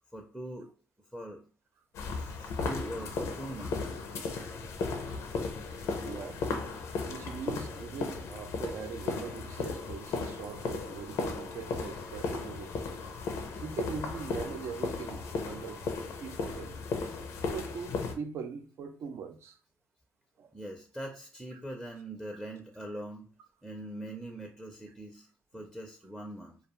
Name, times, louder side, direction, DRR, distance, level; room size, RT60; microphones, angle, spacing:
voice 1, 0.1-0.7 1.1-1.4 2.2-4.0 20.5-23.3 23.6-25.3 25.5-26.6, right 1 dB, 5° right, 0.5 m, -42 dB
sound 1, 1.9-18.1, left 4 dB, 75° left, 0.5 m, -36 dB
voice 2, 6.0-6.4 7.1-12.7 13.6-15.8 16.2-16.8 17.5-19.6 20.4-20.5, right 6 dB, 65° right, 0.4 m, -41 dB
2.4 x 2.2 x 2.9 m
supercardioid pair, 75°, 5 cm